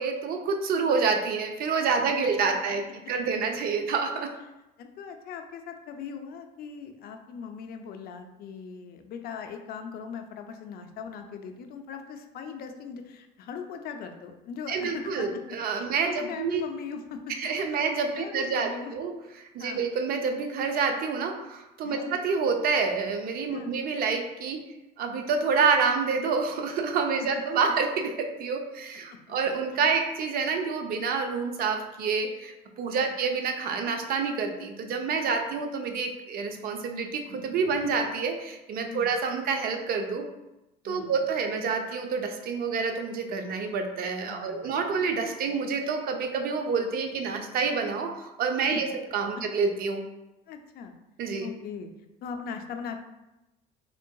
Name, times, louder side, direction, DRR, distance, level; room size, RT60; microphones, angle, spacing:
voice 1, 0.0-4.3 14.7-16.6 17.4-19.1 19.4-24.6 25.0-40.2 40.8-50.0 51.2-51.5, right 5 dB, 50° right, 5 dB, 0.5 m, -28 dB
voice 2, 4.8-15.3 15.7-17.2 18.1-18.9 19.6-19.8 21.8-22.1 23.5-23.7 27.2-27.4 29.1-29.2 29.5-29.6 33.0-33.1 38.8-39.1 40.8-41.1 44.3-44.8 48.7-48.8 50.5-50.9 51.4-51.9 52.2-53.0, left 6 dB, 55° left, 6 dB, 0.4 m, -39 dB
3.8 x 3.5 x 2.2 m, 0.97 s
cardioid pair, 120°, 19 cm